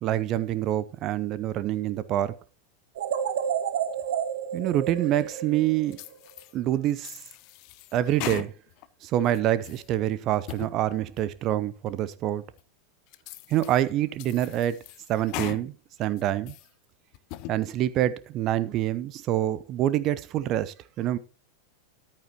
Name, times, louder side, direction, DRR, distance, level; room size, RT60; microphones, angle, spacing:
voice 1, 0.0-2.4 4.5-6.0 6.5-7.2 7.9-8.5 9.0-12.4 13.5-14.8 15.1-15.7 16.0-16.6 17.5-21.2, right 12 dB, 35° right, 0.6 m, -26 dB
sound 1, 3.0-6.1, right 8 dB, 55° right, 1.1 m, -30 dB
sound 2, 5.9-6.5 7.0-8.9 9.3-9.9 10.3-10.7 11.2-11.3 11.9-12.0 12.6-12.7 13.1-13.8 14.2-15.6 16.0-16.7 17.1-17.6, left 15 dB, 45° left, 0.7 m, -39 dB
14.0 x 10.5 x 2.9 m
figure-of-eight pair, 90°, 0 cm